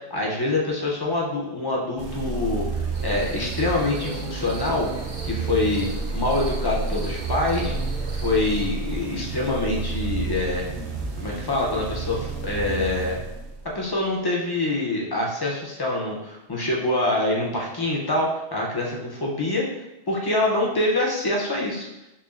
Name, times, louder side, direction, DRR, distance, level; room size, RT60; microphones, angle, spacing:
voice 1, 0.1-4.9 5.2-5.9 6.1-7.7 8.1-10.6 11.2-13.2 13.7-19.7 20.1-21.9, left 2 dB, 30° left, -2 dB, 0.5 m, -25 dB
sound 1, 2.0-13.9, right 4 dB, 80° right, 0.9 m, -30 dB
sound 2, 2.9-8.7, right 2 dB, 55° right, 0.6 m, -39 dB
4.2 x 2.7 x 2.4 m, 0.94 s
omnidirectional pair, 1.1 m